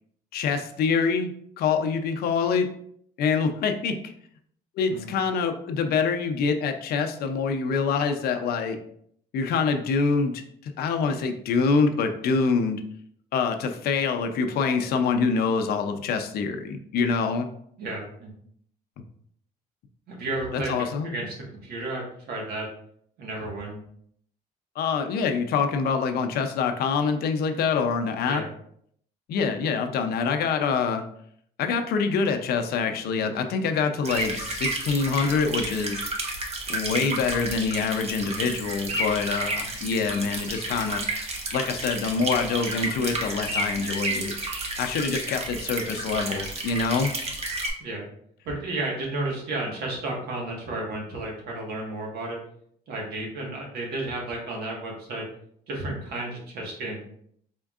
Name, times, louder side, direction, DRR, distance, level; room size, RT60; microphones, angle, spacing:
voice 1, 0.3-1.3 1.6-2.7 3.2-4.1 4.8-8.8 9.3-12.8 13.3-17.5 20.5-21.1 24.8-28.4 29.3-31.1 31.6-36.0 36.7-41.0 41.5-44.3 44.8-47.1, left 5 dB, 65° left, 7 dB, 0.5 m, -25 dB
voice 2, 17.8-18.3 20.1-22.7 23.2-23.8 28.2-28.5 47.8-48.1 48.4-52.4 52.9-55.3 55.7-57.0, right 2 dB, 70° right, -1 dB, 1.4 m, -32 dB
sound 1, 34.0-47.7, right 2 dB, 40° right, 0.9 m, -31 dB
4.4 x 3.5 x 2.4 m, 0.67 s
cardioid pair, 110°, 17 cm